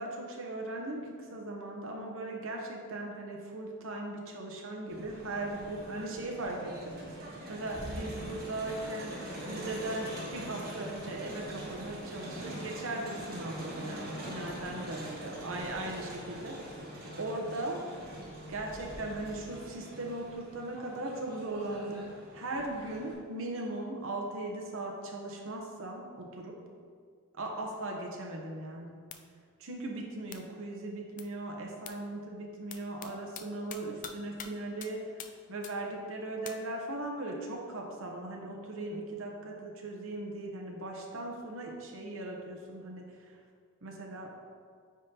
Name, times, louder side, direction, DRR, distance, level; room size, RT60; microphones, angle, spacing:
voice 1, 0.0-9.2 9.5-16.8 17.2-17.8 18.5-26.6 27.3-29.0 29.6-35.2 35.5-43.3 43.8-44.3, right 2 dB, 65° right, 0 dB, 0.9 m, -38 dB
Crowd, 4.9-23.1, right 1 dB, 45° right, 1.4 m, -43 dB
sound 1, 29.1-29.2 30.3-30.4 31.2-31.3 31.9-32.0 32.7-33.1 33.4-33.5 33.7-34.1 34.4-34.5 34.8-34.9 35.2-35.3 35.6-35.7 36.5-36.6, left 8 dB, 35° left, 0.3 m, -42 dB
9.2 x 3.7 x 2.9 m, 2.1 s
head